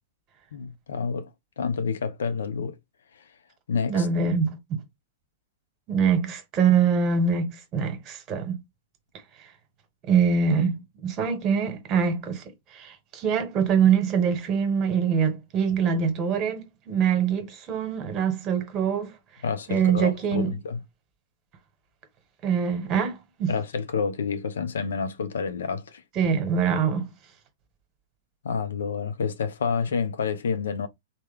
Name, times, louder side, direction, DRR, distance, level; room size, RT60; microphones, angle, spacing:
voice 1, 0.5-1.3 1.6-2.7 3.2-3.3 3.7-4.1 19.4-20.8 23.5-26.0 28.4-30.9, left 5 dB, 75° left, 0.6 m, -29 dB
voice 2, 3.9-4.8 5.9-8.6 10.1-12.4 12.7-19.1 19.7-20.5 22.4-23.5 26.1-27.1, right 6 dB, 35° right, 1.3 m, -24 dB
3.3 x 2.2 x 3.6 m
hypercardioid pair, 110°, 0 cm